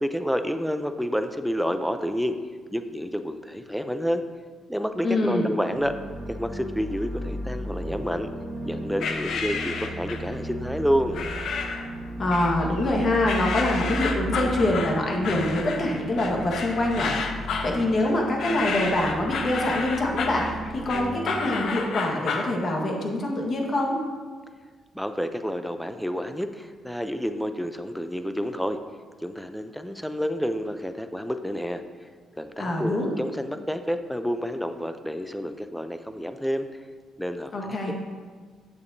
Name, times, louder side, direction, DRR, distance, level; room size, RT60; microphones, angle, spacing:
voice 1, 0.0-2.4 2.7-4.2 4.7-5.9 6.3-8.3 8.6-11.2 24.9-28.8 29.2-31.8 32.4-36.7 37.2-37.8, equal, ahead, 8 dB, 0.5 m, -29 dB
voice 2, 5.0-5.5 12.2-17.1 17.6-24.0 32.6-33.1 37.5-37.9, left 1 dB, 45° left, 0 dB, 1.4 m, -25 dB
sound 1, 5.7-21.6, right 1 dB, 25° right, 1.4 m, -35 dB
sound 2, 9.0-10.3 11.1-11.9 12.3-12.9 13.2-22.5, left 5 dB, 70° left, 0.7 m, -31 dB
8.4 x 6.8 x 2.7 m, 1.6 s
cardioid pair, 90°, 0 cm